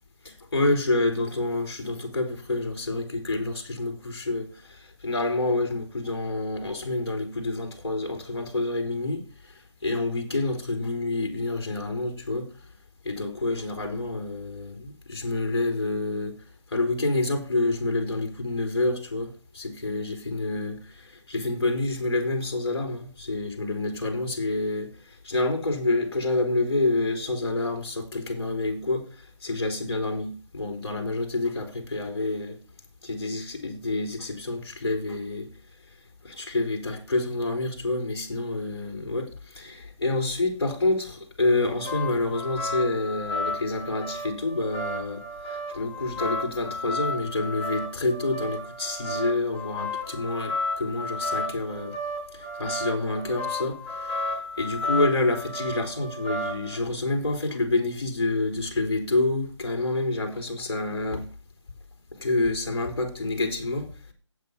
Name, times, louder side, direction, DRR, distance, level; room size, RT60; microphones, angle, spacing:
voice 1, 0.2-12.5 13.0-16.4 16.7-32.6 33.0-35.5 36.2-52.0 52.3-61.3 62.1-64.1, left 2 dB, 55° left, 3.7 m, -28 dB
sound 1, 41.4-56.8, left 1 dB, 25° left, 6.1 m, -33 dB
8.5 x 7.8 x 6.9 m
figure-of-eight pair, 160°, 16 cm